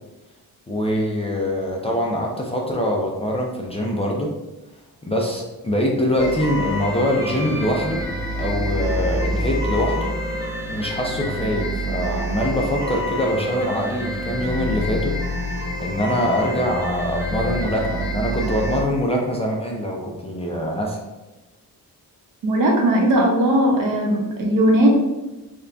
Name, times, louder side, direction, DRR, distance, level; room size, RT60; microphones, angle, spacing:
voice 1, 0.7-4.3 5.0-8.1 8.4-10.1 10.7-15.2 15.5-21.0, equal, 20° left, -2 dB, 0.3 m, -24 dB
sound 1, 6.2-18.8, equal, 10° right, 0.9 m, -27 dB
voice 2, 22.4-24.9, right 1 dB, 65° right, -1 dB, 0.9 m, -18 dB
3.7 x 2.2 x 3.3 m, 1.1 s
wide cardioid pair, 170°, 35 cm